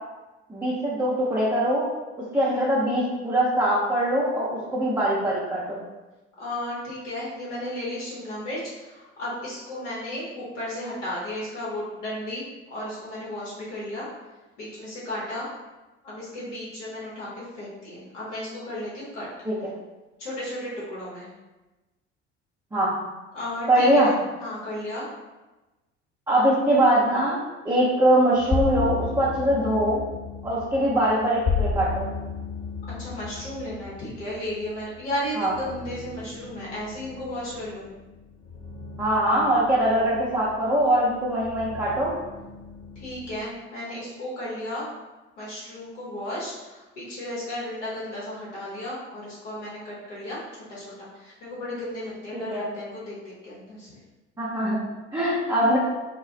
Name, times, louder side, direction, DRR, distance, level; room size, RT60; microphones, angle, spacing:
voice 1, 0.5-1.8 2.2-5.8 19.5-19.6 22.7-22.9 23.7-24.1 26.3-27.4 27.6-30.0 30.4-32.1 35.4-35.5 39.0-42.1 52.3-52.6 54.4-54.8 55.1-55.8, right 1 dB, 10° right, -8 dB, 0.6 m, -22 dB
voice 2, 2.3-2.7 6.4-12.4 12.7-14.1 14.6-15.5 16.0-19.3 20.2-21.3 23.3-24.1 24.4-25.1 33.0-37.9 43.0-44.9 45.4-50.4 50.7-53.9 55.4-55.7, left 1 dB, 75° left, -7 dB, 0.9 m, -34 dB
sound 1, 28.3-43.4, left 5 dB, 45° left, 1.2 m, -34 dB
2.3 x 2.1 x 3.7 m, 1.1 s
figure-of-eight pair, 55°, 36 cm